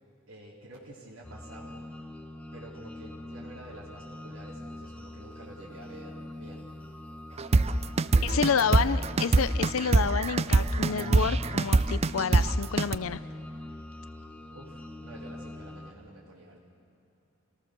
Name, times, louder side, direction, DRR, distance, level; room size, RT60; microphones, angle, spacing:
voice 1, 0.3-1.9 2.5-6.7 8.1-9.4 14.5-16.6, right 1 dB, 80° right, -8 dB, 3.8 m, -48 dB
sound 1, 1.2-15.9, left 1 dB, 5° left, 1.2 m, -43 dB
sound 2, 7.4-13.0, right 3 dB, 30° right, 0.4 m, -23 dB
voice 2, 8.2-13.2, left 6 dB, 80° left, 15 dB, 0.6 m, -29 dB
29.0 x 18.5 x 6.6 m, 2.8 s
head